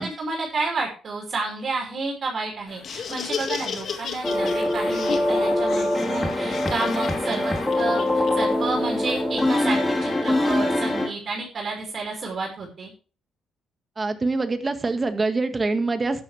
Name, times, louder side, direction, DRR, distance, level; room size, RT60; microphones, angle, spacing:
voice 1, 0.0-12.9, right 3 dB, 50° right, 0 dB, 5.3 m, -30 dB
Laughter, 2.7-9.2, left 6 dB, 60° left, 2.0 m, -34 dB
sound 1, 4.2-11.1, left 1 dB, 15° left, 3.8 m, -23 dB
voice 2, 14.0-16.2, right 3 dB, 25° right, 8 dB, 1.8 m, -25 dB
13.0 x 11.0 x 3.4 m, 0.37 s
cardioid pair, 90°, 0 cm